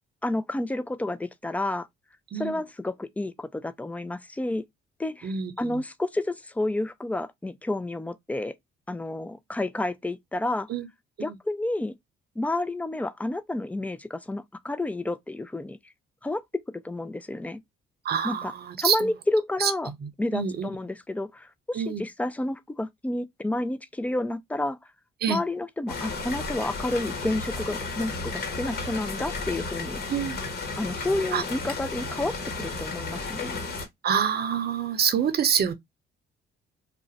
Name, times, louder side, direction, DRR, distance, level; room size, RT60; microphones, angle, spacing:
voice 1, 0.2-1.9 2.3-4.6 5.0-5.3 5.6-8.5 8.9-10.7 11.2-11.9 12.4-15.8 16.2-16.4 16.8-17.6 18.2-18.5 18.8-19.9 20.2-24.8 25.3-30.0 30.8-33.6, left 2 dB, 5° left, 0.4 m, -30 dB
voice 2, 5.2-5.8 10.7-10.9 11.2-11.3 18.0-19.1 19.6-19.7 20.0-20.7 21.7-22.0 25.2-25.4 30.1-30.4 31.3-31.4 34.0-35.7, right 8 dB, 55° right, 0.6 m, -26 dB
sound 1, 25.9-33.9, left 3 dB, 55° left, 1.2 m, -33 dB
2.4 x 2.0 x 3.9 m
cardioid pair, 90°, 20 cm